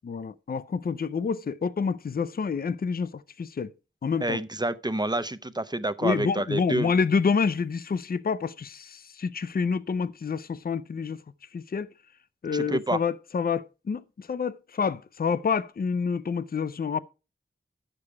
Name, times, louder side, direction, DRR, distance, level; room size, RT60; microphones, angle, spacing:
voice 1, 0.0-3.7 4.0-4.4 6.0-11.2 11.5-11.9 12.4-17.0, left 5 dB, 45° left, 0.4 m, -28 dB
voice 2, 4.2-6.9 12.5-13.0, right 1 dB, 20° right, 0.5 m, -28 dB
9.7 x 6.8 x 4.6 m
wide cardioid pair, 60°, 21 cm